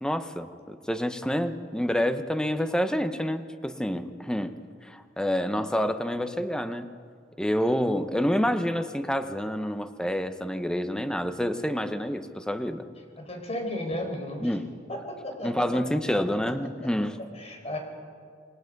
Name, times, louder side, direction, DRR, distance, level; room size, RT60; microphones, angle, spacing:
voice 1, 0.0-4.6 4.8-6.9 7.4-12.9 14.4-14.7 15.4-17.2, equal, 5° left, 9 dB, 0.9 m, -28 dB
voice 2, 13.2-14.5 14.9-15.8 17.3-17.8, left 1 dB, 35° left, 3 dB, 4.6 m, -34 dB
27.5 x 22.0 x 5.4 m, 2.1 s
head